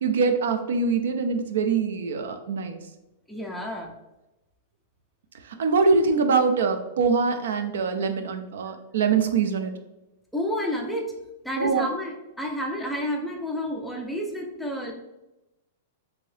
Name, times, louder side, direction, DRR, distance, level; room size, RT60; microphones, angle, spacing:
voice 1, 0.0-2.8 5.4-9.7 11.6-11.9, right 5 dB, 80° right, 7 dB, 0.4 m, -23 dB
voice 2, 3.3-3.9 10.3-11.1 11.4-14.9, equal, ahead, 0 dB, 0.4 m, -30 dB
2.7 x 2.6 x 3.2 m, 0.96 s
supercardioid pair, 160°, 0 cm